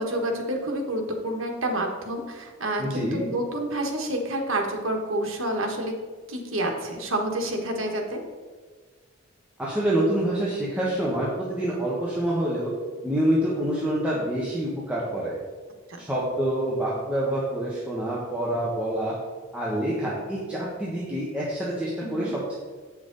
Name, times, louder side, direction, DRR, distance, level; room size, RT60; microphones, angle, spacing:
voice 1, 0.0-5.9 6.3-8.2 22.0-22.3, right 1 dB, 80° right, 2 dB, 1.3 m, -28 dB
voice 2, 2.8-3.2 9.6-12.7 13.0-15.3 16.0-19.1 19.5-22.5, right 1 dB, 5° right, -7 dB, 1.2 m, -27 dB
8.3 x 6.0 x 3.9 m, 1.5 s
head